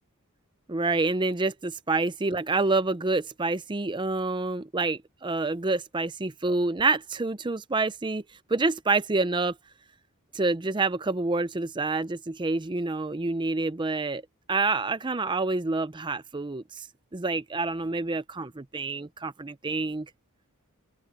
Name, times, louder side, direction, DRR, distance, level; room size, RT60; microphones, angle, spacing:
voice 1, 0.7-8.2 8.5-9.6 10.3-14.2 14.5-16.9 17.1-20.1, right 3 dB, 20° right, 0.6 m, -27 dB
open air
head